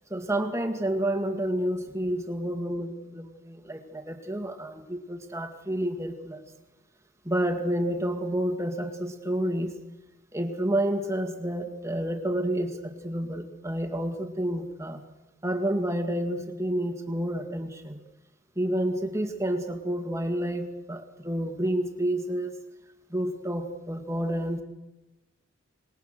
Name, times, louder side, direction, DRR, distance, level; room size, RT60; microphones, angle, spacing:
voice 1, 0.1-6.4 7.2-9.8 10.3-15.0 15.4-18.0 18.6-22.6 23.1-24.6, right 1 dB, 15° right, 6 dB, 2.1 m, -29 dB
27.0 x 21.0 x 6.7 m, 1.1 s
head